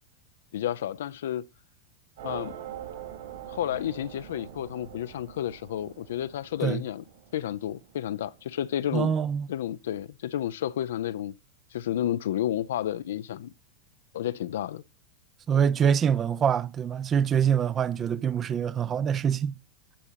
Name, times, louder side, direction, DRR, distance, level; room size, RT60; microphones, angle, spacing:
voice 1, 0.5-1.4 2.2-2.6 3.5-7.0 7.3-9.1 9.5-11.3 11.7-13.5 14.1-14.8, left 11 dB, 60° left, 0.3 m, -31 dB
sound 1, 2.2-9.0, right 10 dB, 60° right, 3.8 m, -44 dB
voice 2, 8.9-9.5 15.5-19.6, right 8 dB, 25° right, 0.4 m, -25 dB
10.0 x 7.1 x 2.7 m
figure-of-eight pair, 90°, 0 cm